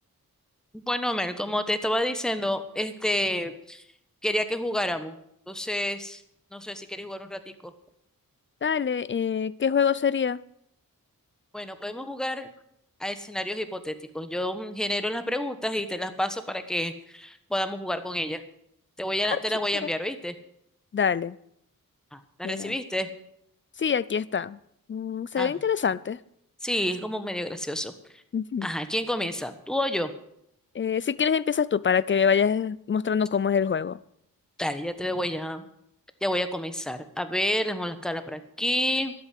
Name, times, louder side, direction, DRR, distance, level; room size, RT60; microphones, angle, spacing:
voice 1, 0.7-3.8 4.2-5.2 5.5-6.2 6.5-7.7 11.5-12.5 13.0-18.4 19.0-20.3 22.1-23.1 25.4-25.5 26.6-28.2 28.6-30.1 34.6-35.7 36.2-39.1, left 1 dB, ahead, 10 dB, 1.2 m, -29 dB
voice 2, 8.6-10.4 19.3-19.4 19.8-19.9 20.9-21.4 22.4-22.8 23.8-24.6 24.9-26.2 28.3-28.7 30.7-34.0, left 7 dB, 35° left, 19 dB, 0.5 m, -25 dB
12.0 x 8.5 x 7.6 m, 0.73 s
wide cardioid pair, 80°, 35 cm